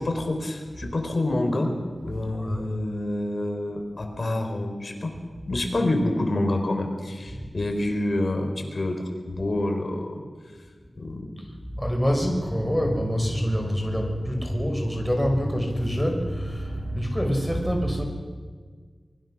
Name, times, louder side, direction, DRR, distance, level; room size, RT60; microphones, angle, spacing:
voice 1, 0.0-1.7 2.0-5.1 5.4-10.2 11.0-11.3, left 1 dB, 55° left, 4 dB, 4.6 m, -27 dB
voice 2, 2.3-2.7 5.5-5.7 7.3-7.7 11.8-18.0, equal, ahead, 3 dB, 5.3 m, -26 dB
24.5 x 21.5 x 6.4 m, 1.5 s
cardioid pair, 50°, 0 cm